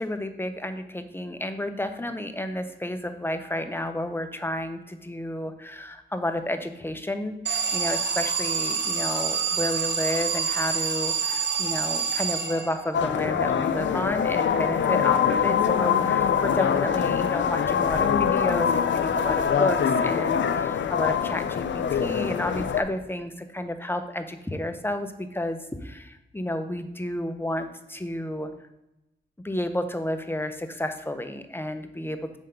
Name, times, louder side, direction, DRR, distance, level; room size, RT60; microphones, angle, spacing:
voice 1, 0.0-28.5 29.4-32.4, left 1 dB, 10° left, 8 dB, 0.7 m, -31 dB
Alarm, 7.5-13.0, right 6 dB, 65° right, 0.8 m, -27 dB
sound 1, 12.9-22.8, left 7 dB, 75° left, 0.4 m, -24 dB
5.6 x 3.6 x 5.1 m, 0.92 s
cardioid pair, 50°, 19 cm